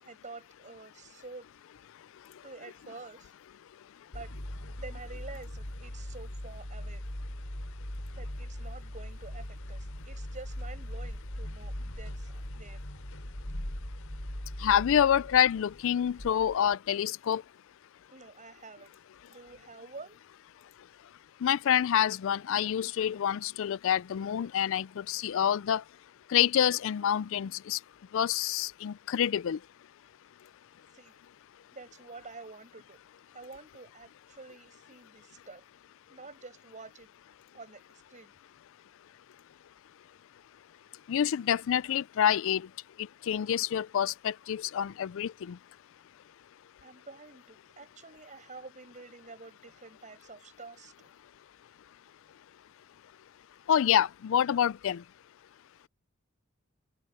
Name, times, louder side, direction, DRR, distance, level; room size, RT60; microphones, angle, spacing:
voice 1, 0.0-1.5 1.8-1.9 2.4-3.3 4.1-4.4 4.7-7.0 8.1-13.0 18.1-19.0 19.3-20.2 30.9-31.2 31.7-33.0 33.3-35.6 36.1-37.1 37.5-38.3 46.8-51.1, right 3 dB, 35° right, 6.7 m, -48 dB
sound 1, 4.1-16.8, equal, 85° left, 4.6 m, -40 dB
voice 2, 14.6-17.4 21.4-25.8 26.3-27.8 28.1-29.6 41.1-42.6 43.3-45.6 53.7-55.0, left 9 dB, 65° left, 0.4 m, -27 dB
head